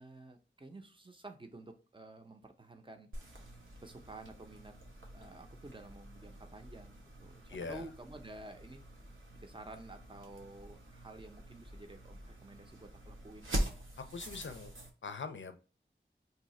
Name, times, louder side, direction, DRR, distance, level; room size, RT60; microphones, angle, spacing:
voice 1, 0.0-3.1 3.3-3.5 3.8-4.7 5.1-13.6, right 2 dB, 25° right, 0.6 m, -51 dB
sound 1, 3.1-14.9, right 1 dB, 85° right, 0.8 m, -44 dB
voice 2, 7.5-7.9 14.1-14.7 15.0-15.6, left 4 dB, 70° left, 0.5 m, -42 dB
2.7 x 2.4 x 4.1 m
wide cardioid pair, 50°, 20 cm